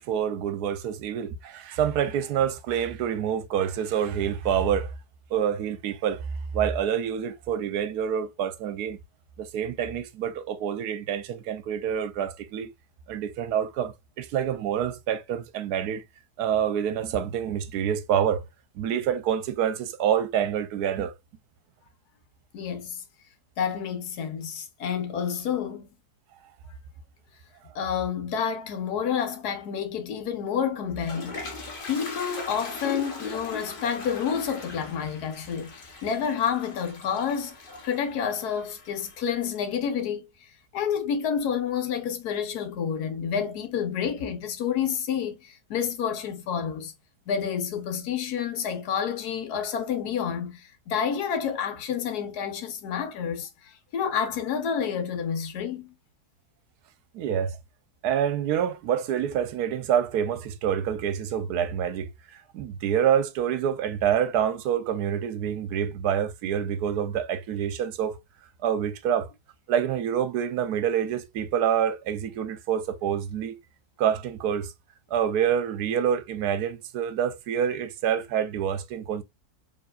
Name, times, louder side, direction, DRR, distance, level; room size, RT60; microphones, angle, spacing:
voice 1, 0.0-4.9 5.3-6.2 6.5-9.0 9.4-12.7 13.1-16.0 16.4-18.4 18.8-21.1 57.1-57.5 58.0-68.2 68.6-69.3 69.7-73.6 74.0-74.7 75.1-79.2, right 9 dB, 75° right, 1.1 m, -27 dB
voice 2, 22.5-23.0 23.6-25.9 27.7-31.5 31.9-40.3 40.7-46.9 47.3-55.9, left 7 dB, 70° left, 1.4 m, -29 dB
Toilet flush, 30.6-39.5, left 3 dB, 40° left, 1.0 m, -40 dB
4.5 x 3.1 x 2.3 m
omnidirectional pair, 1.7 m